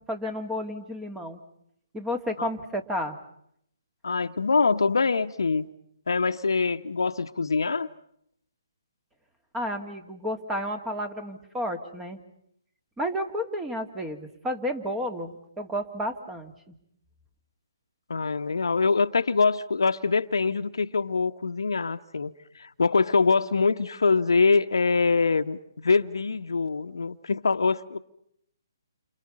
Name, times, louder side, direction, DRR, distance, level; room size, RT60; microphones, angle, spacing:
voice 1, 0.1-1.4 1.9-3.2 9.5-12.2 13.0-16.7, equal, 10° right, 2.4 m, -31 dB
voice 2, 4.0-5.7 6.1-7.9 18.1-28.0, left 4 dB, 80° left, 1.3 m, -24 dB
30.0 x 28.5 x 5.5 m
hypercardioid pair, 150°, 2 cm